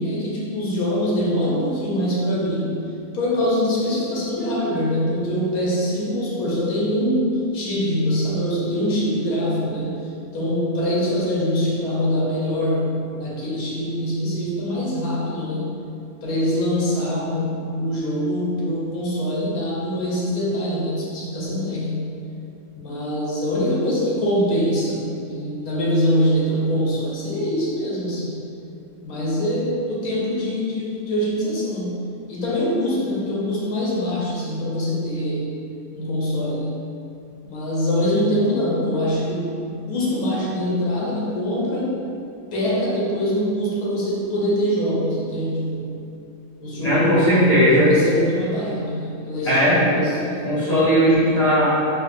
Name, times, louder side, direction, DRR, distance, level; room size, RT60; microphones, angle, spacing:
voice 1, 0.0-2.8 3.1-10.0 10.3-15.8 16.2-22.2 22.8-28.5 29.0-32.0 32.3-35.6 35.9-36.8 37.4-41.9 42.5-45.9 46.6-47.4 47.7-50.7, equal, 75° left, -5 dB, 1.3 m, -24 dB
voice 2, 46.8-47.9 49.4-50.1 50.4-51.7, equal, 30° left, -12 dB, 1.2 m, -17 dB
4.3 x 2.6 x 2.6 m, 2.6 s
omnidirectional pair, 1.6 m